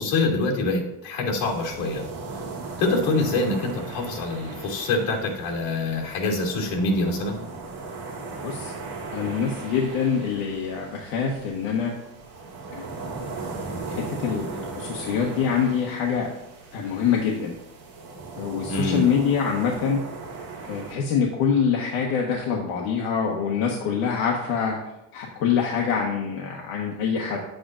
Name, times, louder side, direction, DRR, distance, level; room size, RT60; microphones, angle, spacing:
voice 1, 0.0-2.0 2.8-7.4 18.7-19.0, left 2 dB, 75° left, -1 dB, 2.6 m, -25 dB
sound 1, 1.4-20.9, right 3 dB, 55° right, 2.7 m, -38 dB
voice 2, 9.1-11.9 12.7-13.1 13.9-16.3 16.7-17.5 18.4-20.0 20.6-24.8 25.1-27.4, left 6 dB, 90° left, 0 dB, 1.3 m, -25 dB
10.0 x 7.8 x 2.5 m, 0.89 s
cardioid pair, 175°, 45 cm